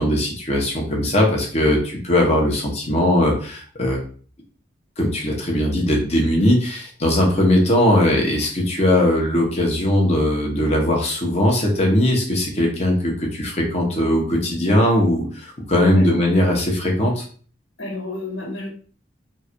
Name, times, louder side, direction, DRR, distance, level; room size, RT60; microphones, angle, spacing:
voice 1, 0.0-4.0 5.0-17.2, left 1 dB, 35° left, -1 dB, 1.3 m, -19 dB
voice 2, 17.8-18.7, left 2 dB, 80° left, 0 dB, 1.8 m, -30 dB
3.8 x 2.6 x 4.5 m, 0.43 s
head